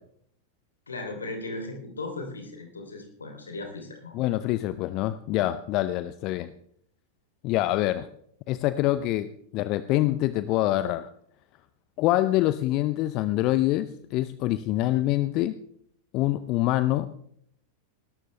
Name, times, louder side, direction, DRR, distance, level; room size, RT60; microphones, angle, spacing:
voice 1, 0.9-4.1, left 2 dB, 75° left, 4 dB, 3.2 m, -37 dB
voice 2, 4.1-6.5 7.4-8.1 8.5-9.3 9.5-11.1 12.0-15.5 16.1-17.1, left 15 dB, 40° left, 14 dB, 0.6 m, -25 dB
19.0 x 12.5 x 3.3 m, 0.66 s
figure-of-eight pair, 90°, 0 cm